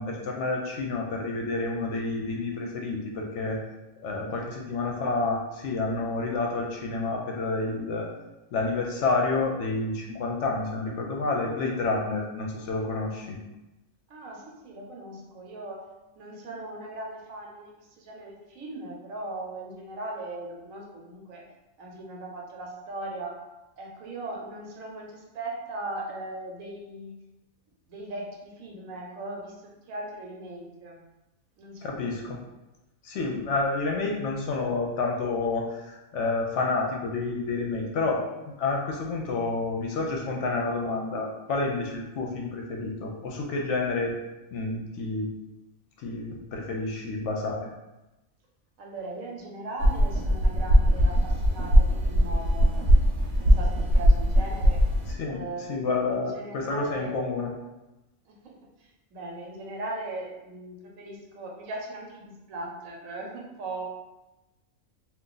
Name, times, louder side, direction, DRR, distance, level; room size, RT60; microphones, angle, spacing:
voice 1, 0.0-3.6 4.0-8.1 8.5-13.4 31.8-32.4 33.0-44.1 44.5-45.3 46.0-47.7 55.1-55.4 55.7-57.5, left 3 dB, 65° left, 0 dB, 0.8 m, -29 dB
voice 2, 14.1-15.8 16.2-21.4 21.8-23.3 23.8-27.1 27.9-31.0 31.6-32.1 48.8-52.9 53.4-54.8 55.3-55.8 56.1-57.3 58.3-58.5 59.1-63.8, right 2 dB, 80° right, -1 dB, 1.1 m, -39 dB
sound 1, 49.8-55.1, equal, 60° right, 0.9 m, -20 dB
2.6 x 2.4 x 3.8 m, 1.0 s
omnidirectional pair, 1.4 m